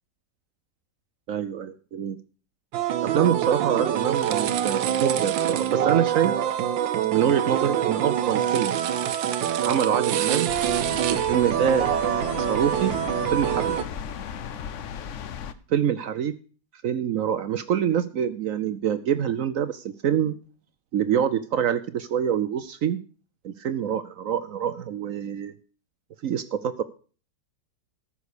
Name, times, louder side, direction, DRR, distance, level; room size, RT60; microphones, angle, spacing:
voice 1, 1.3-2.2 3.0-6.4 7.1-8.8 9.6-10.5 11.1-11.9 12.4-12.9 13.3-13.8 15.7-16.3 16.8-20.4 20.9-23.0 23.4-25.5 26.2-26.8, right 9 dB, 65° right, 13 dB, 0.8 m, -25 dB
sound 1, 2.7-13.8, right 10 dB, 85° right, 1.5 m, -25 dB
sound 2, 10.5-15.5, left 7 dB, 60° left, 0.8 m, -35 dB
13.5 x 6.3 x 6.7 m, 0.39 s
omnidirectional pair, 2.0 m